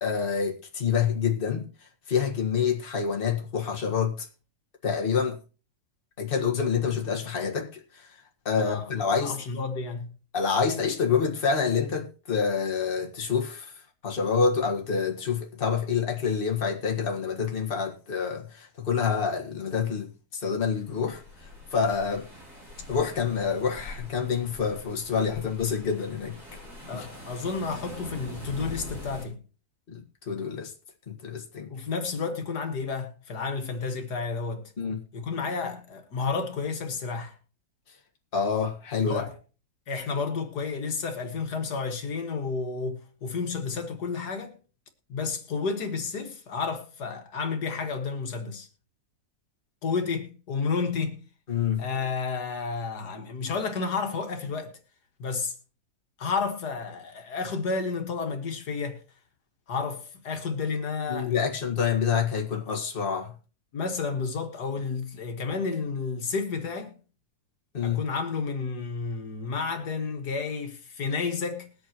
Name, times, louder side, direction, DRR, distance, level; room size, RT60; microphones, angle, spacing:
voice 1, 0.0-1.7 2.1-4.3 4.8-5.4 6.2-8.1 8.5-9.4 10.3-13.7 14.0-21.2 21.7-22.3 22.9-26.4 26.9-27.1 29.9-30.7 31.1-31.7 34.8-35.0 38.3-39.2 51.5-51.8 61.1-63.3 67.7-68.0, left 6 dB, 35° left, 1.8 m, -27 dB
voice 2, 8.6-10.1 26.8-29.4 31.7-34.7 35.1-37.4 39.1-39.3 39.9-44.5 45.1-48.7 49.8-51.2 51.8-54.8 55.2-55.5 56.2-59.0 59.7-61.3 63.7-66.9 67.8-71.7, left 4 dB, 75° left, 2.1 m, -31 dB
sound 1, 20.7-29.3, left 1 dB, 25° right, 7.6 m, -43 dB
21.0 x 8.4 x 3.0 m
omnidirectional pair, 1.7 m